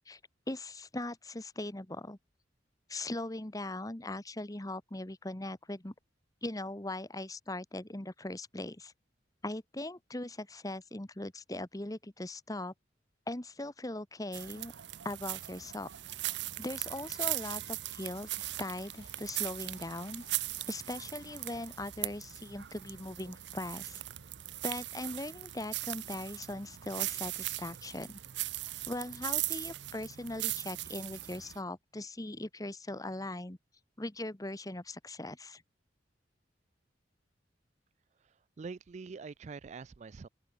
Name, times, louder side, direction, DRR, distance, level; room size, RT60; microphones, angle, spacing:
voice 1, 0.5-2.2 2.9-5.9 6.4-8.9 9.4-12.7 13.3-14.7 15.0-15.9 16.6-20.2 20.7-24.0 24.6-28.2 28.9-33.6 34.0-35.6, left 1 dB, 20° left, 1.3 m, -40 dB
sound 1, 14.3-31.6, right 16 dB, 75° right, 0.7 m, -39 dB
sound 2, 15.4-24.1, left 6 dB, 70° left, 5.0 m, -64 dB
voice 2, 38.6-40.3, right 4 dB, 40° right, 0.4 m, -44 dB
open air
head